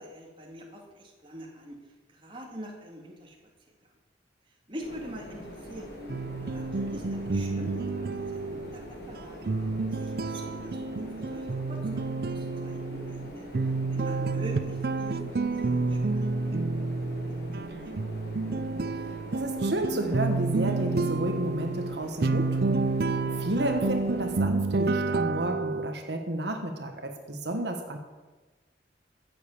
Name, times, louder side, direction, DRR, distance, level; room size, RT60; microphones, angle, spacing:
voice 1, 0.0-1.8 2.1-3.4 4.7-8.1 8.3-9.5 9.9-17.7, equal, 30° right, 0 dB, 2.3 m, -44 dB
sound 1, 4.8-24.4, equal, 60° left, 3.7 m, -44 dB
sound 2, 6.1-25.9, right 3 dB, 55° right, 0.5 m, -30 dB
voice 2, 18.9-28.0, right 1 dB, 75° right, 4 dB, 1.5 m, -32 dB
15.0 x 7.7 x 7.2 m, 1.3 s
head